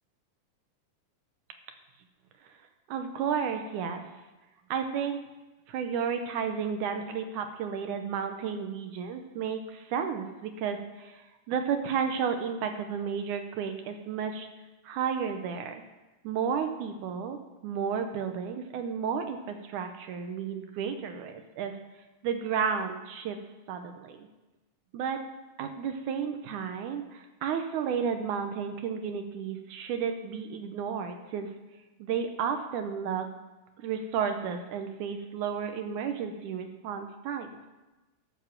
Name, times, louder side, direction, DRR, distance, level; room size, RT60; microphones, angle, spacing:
voice 1, 2.9-4.0 4.7-5.2 5.7-14.5 14.8-15.8 16.2-21.8 22.2-23.4 23.7-24.3 24.9-25.2 25.6-31.5 32.0-33.3 33.8-37.6, right 7 dB, 70° right, 6 dB, 2.1 m, -32 dB
14.0 x 7.2 x 5.9 m, 1.1 s
omnidirectional pair, 4.0 m